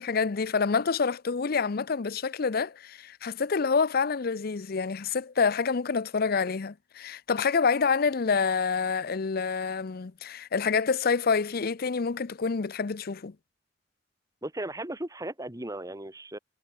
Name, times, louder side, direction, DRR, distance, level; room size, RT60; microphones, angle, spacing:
voice 1, 0.0-13.3, left 5 dB, 55° left, 0.6 m, -27 dB
voice 2, 14.4-16.4, right 1 dB, 20° right, 2.2 m, -36 dB
head